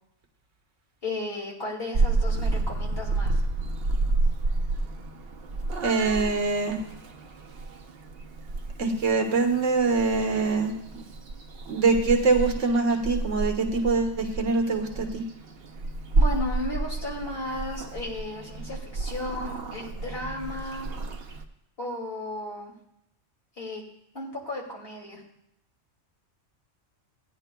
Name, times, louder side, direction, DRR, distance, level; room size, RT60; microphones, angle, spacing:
voice 1, 1.0-3.4 16.2-20.9 21.8-22.7 23.6-23.8 24.1-25.2, left 1 dB, 50° left, -3 dB, 2.7 m, -34 dB
Purr / Meow, 1.9-21.4, right 2 dB, 55° right, 0.9 m, -30 dB
voice 2, 5.8-6.8 8.8-11.0 11.7-15.2, right 4 dB, 80° right, 2 dB, 1.5 m, -24 dB
16.0 x 9.9 x 2.2 m, 0.79 s
omnidirectional pair, 1.3 m